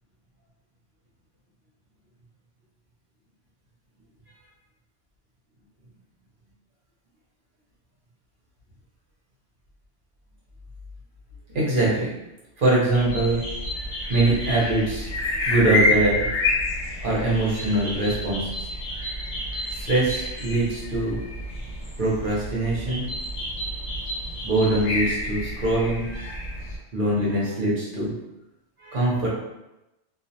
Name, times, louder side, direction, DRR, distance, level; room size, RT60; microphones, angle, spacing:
voice 1, 11.5-12.1 12.6-13.4 14.1-16.3 17.0-18.7 19.7-21.2 22.0-23.1 24.4-26.4 26.9-28.1 28.8-29.3, right 2 dB, 50° right, -6 dB, 0.8 m, -23 dB
sound 1, 12.9-26.8, left 2 dB, 85° left, 1.0 m, -29 dB
2.5 x 2.0 x 2.7 m, 0.96 s
omnidirectional pair, 1.2 m